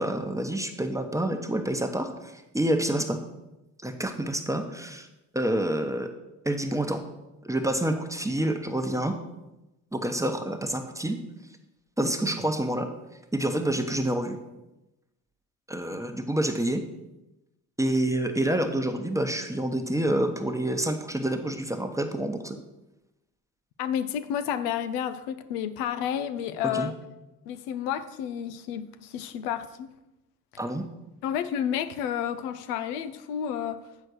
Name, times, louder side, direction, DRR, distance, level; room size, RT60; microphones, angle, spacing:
voice 1, 0.0-3.2 3.8-5.1 5.3-6.1 6.4-7.0 7.4-9.1 9.9-11.2 12.0-12.9 13.3-14.4 15.7-16.8 17.8-22.6 26.7-26.9 30.6-30.8, right 1 dB, 5° right, 5 dB, 1.0 m, -28 dB
voice 2, 23.8-27.0 27.5-29.9 31.2-33.8, left 9 dB, 80° left, 11 dB, 0.7 m, -30 dB
8.3 x 4.4 x 6.3 m, 0.98 s
hypercardioid pair, 60°, 45 cm